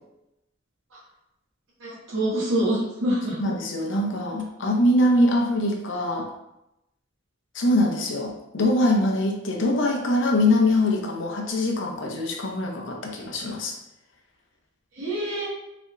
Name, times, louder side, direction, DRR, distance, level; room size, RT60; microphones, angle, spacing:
voice 1, 1.8-3.4 15.0-15.5, right 1 dB, 70° right, -5 dB, 1.5 m, -25 dB
voice 2, 3.4-6.3 7.5-13.7, left 1 dB, 60° left, 1 dB, 0.7 m, -23 dB
4.1 x 3.3 x 2.5 m, 0.89 s
head